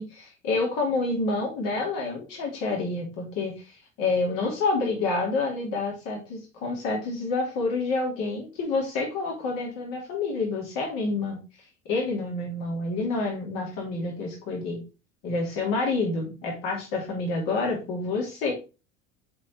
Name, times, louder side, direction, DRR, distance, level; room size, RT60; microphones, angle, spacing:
voice 1, 0.0-3.6 4.0-11.4 11.9-14.8 15.2-18.5, left 3 dB, 55° left, -1 dB, 3.1 m, -28 dB
7.3 x 4.1 x 4.5 m, 0.30 s
hypercardioid pair, 70°, 40 cm